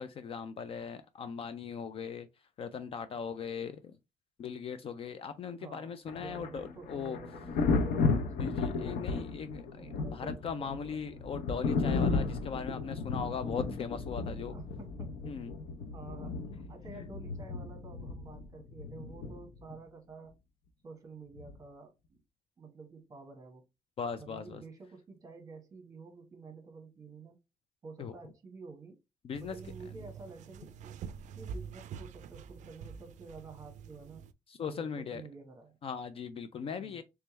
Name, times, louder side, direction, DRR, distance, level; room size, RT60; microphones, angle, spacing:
voice 1, 0.0-2.3 2.6-4.0 4.4-7.2 8.4-14.5 15.3-15.5 16.9-17.1 24.0-24.6 28.0-28.2 29.2-29.6 34.5-35.2 35.8-37.0, left 6 dB, 40° left, 0.4 m, -39 dB
voice 2, 5.5-9.1 9.7-11.4 14.5-15.2 15.9-20.4 20.8-22.2 22.6-23.6 24.2-27.4 27.8-29.0 29.4-31.0 31.3-34.2 34.7-35.8 36.8-37.0, right 4 dB, 25° right, 1.2 m, -50 dB
Thunder, 6.1-19.7 21.4-21.6, left 4 dB, 90° left, 0.7 m, -34 dB
sound 1, 29.3-34.3, right 6 dB, 55° right, 0.4 m, -46 dB
3.4 x 3.3 x 3.0 m
cardioid pair, 150°, 15 cm